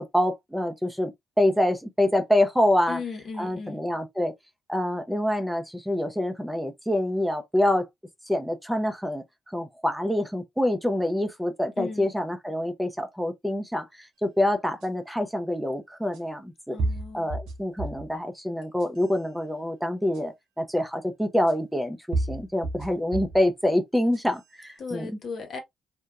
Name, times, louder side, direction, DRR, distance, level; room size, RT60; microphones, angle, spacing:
voice 1, 0.0-3.0 3.4-4.3 4.7-7.9 8.3-16.8 17.1-25.1, left 1 dB, 5° right, 0.6 m, -26 dB
voice 2, 2.9-3.8 11.8-12.1 16.7-17.3 24.8-25.6, left 5 dB, 60° left, 0.9 m, -36 dB
sound 1, 14.8-14.9 16.1-16.2 16.8-18.1 18.6-19.2 20.1-20.2 21.5-21.6 22.1-23.4 23.9-24.5, right 2 dB, 75° right, 0.7 m, -31 dB
2.7 x 2.2 x 2.3 m
hypercardioid pair, 50°, 0 cm